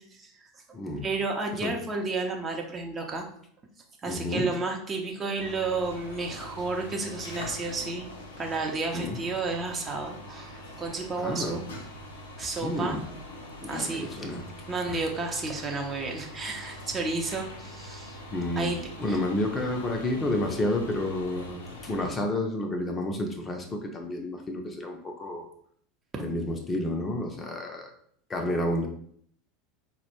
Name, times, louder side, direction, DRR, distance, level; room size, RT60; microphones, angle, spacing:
voice 1, 0.1-0.6 1.0-3.3 4.0-11.6 12.4-13.0 13.6-14.1 14.7-18.2 18.6-19.2 26.1-26.2, right 3 dB, 25° right, 1 dB, 0.6 m, -32 dB
voice 2, 0.7-1.0 1.6-1.8 4.1-4.5 8.9-9.2 11.2-11.6 12.6-13.0 13.6-14.5 14.9-15.0 18.3-18.7 19.0-25.5 26.2-27.9 28.3-28.9, left 1 dB, 25° left, 3 dB, 0.5 m, -30 dB
sound 1, 5.4-22.1, left 1 dB, 75° left, 0.6 m, -43 dB
4.0 x 2.0 x 2.9 m, 0.62 s
figure-of-eight pair, 80°, 0 cm